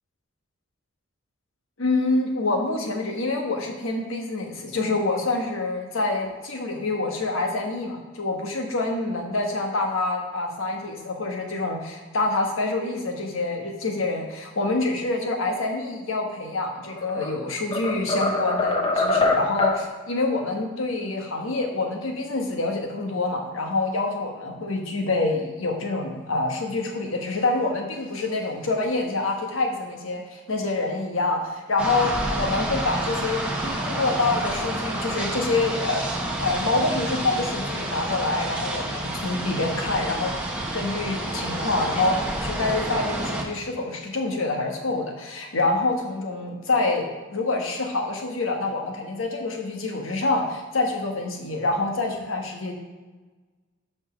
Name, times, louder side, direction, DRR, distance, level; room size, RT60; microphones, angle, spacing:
voice 1, 1.8-36.1 36.3-40.3 40.7-52.7, left 2 dB, 85° left, 2 dB, 1.3 m, -26 dB
sound 1, 16.8-17.3 17.7-19.8, left 2 dB, 25° left, 0.7 m, -23 dB
sound 2, 31.8-43.4, right 1 dB, 5° right, 1.1 m, -29 dB
5.9 x 5.2 x 6.2 m, 1.3 s
head